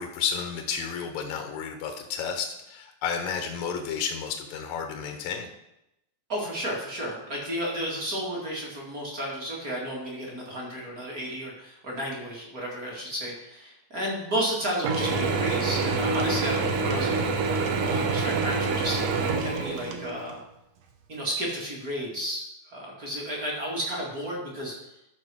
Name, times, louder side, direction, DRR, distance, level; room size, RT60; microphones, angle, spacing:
voice 1, 0.0-5.5, left 6 dB, 75° left, 4 dB, 1.7 m, -32 dB
voice 2, 6.3-17.2 17.8-19.0 19.4-20.4 21.1-24.8, equal, 30° right, -3 dB, 1.8 m, -32 dB
Mechanisms / Drill, 14.8-20.3, right 4 dB, 80° right, 1.5 m, -26 dB
13.0 x 4.6 x 6.1 m, 0.86 s
omnidirectional pair, 4.3 m